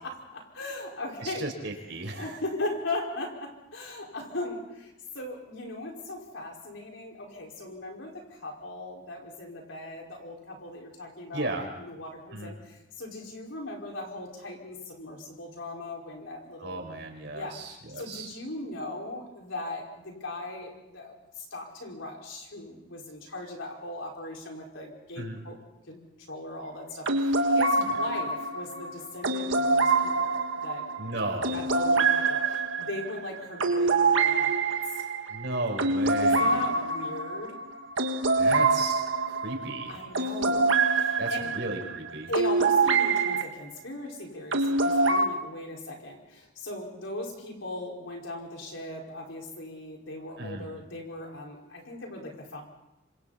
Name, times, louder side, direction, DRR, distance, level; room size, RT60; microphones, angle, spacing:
voice 1, 0.0-1.5 2.2-16.8 17.3-17.6 18.0-25.6 25.9-30.9 31.5-35.0 36.2-37.6 39.9-41.5 42.3-52.6, left 2 dB, 90° left, 0 dB, 5.3 m, -38 dB
voice 2, 1.2-2.4 11.3-11.7 12.3-12.5 16.6-18.3 25.2-25.4 28.0-28.1 31.0-31.8 35.3-36.7 38.4-40.0 41.2-42.3 50.4-50.7, right 2 dB, 70° right, 3 dB, 4.9 m, -35 dB
sound 1, 27.1-43.4 44.5-45.3, right 3 dB, 85° right, 1.6 m, -25 dB
26.5 x 26.5 x 4.3 m, 0.90 s
head